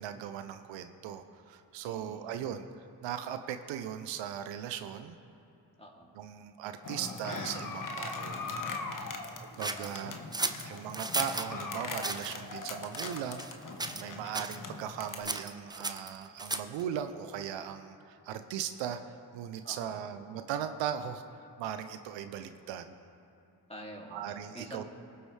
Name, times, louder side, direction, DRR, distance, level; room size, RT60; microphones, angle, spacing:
voice 1, 0.0-5.2 6.2-8.4 9.4-10.1 10.6-13.7 14.0-23.0 24.1-24.8, right 9 dB, 85° right, 9 dB, 0.6 m, -38 dB
voice 2, 1.8-2.3 5.8-6.1 9.0-9.3 9.7-10.5 19.6-20.0 23.7-24.8, equal, 15° left, -1 dB, 2.7 m, -48 dB
sound 1, 6.8-15.2, left 3 dB, 45° left, 1.2 m, -40 dB
sound 2, 9.6-11.5 12.0-12.3 12.9-13.5 13.8-14.1 14.3-14.6 15.2-16.8, right 2 dB, 10° right, 0.7 m, -35 dB
19.0 x 7.8 x 3.3 m, 3.0 s
supercardioid pair, 40°, 44 cm